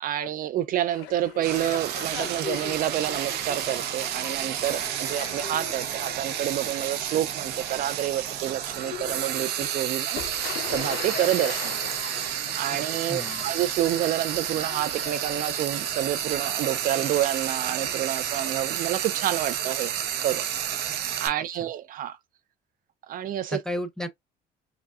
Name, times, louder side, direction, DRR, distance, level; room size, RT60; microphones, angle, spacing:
voice 1, 0.0-10.2 10.7-11.8 12.5-19.9 20.2-20.9 21.2-22.2 23.1-23.6, right 12 dB, 55° right, 0.4 m, -28 dB
sound 1, 0.9-19.0, left 9 dB, 80° left, 0.7 m, -41 dB
Frying (food), 1.4-21.3, right 10 dB, 75° right, 0.8 m, -31 dB
voice 2, 12.7-13.5 21.5-21.7 23.5-24.1, equal, 5° left, 0.7 m, -34 dB
4.8 x 2.3 x 2.3 m
cardioid pair, 110°, 17 cm